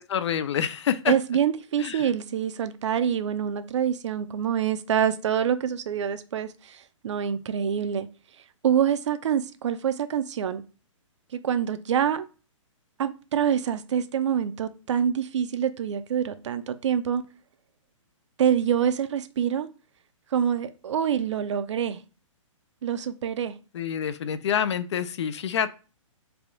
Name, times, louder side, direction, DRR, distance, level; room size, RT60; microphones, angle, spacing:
voice 1, 0.1-1.1 1.8-2.1 23.7-25.8, left 8 dB, 60° left, 0.4 m, -27 dB
voice 2, 1.1-8.1 8.6-10.6 11.3-12.2 13.0-17.2 18.4-19.7 20.3-22.0 22.8-23.6, right 8 dB, 60° right, 0.5 m, -26 dB
3.4 x 2.3 x 3.8 m
hypercardioid pair, 160°, 17 cm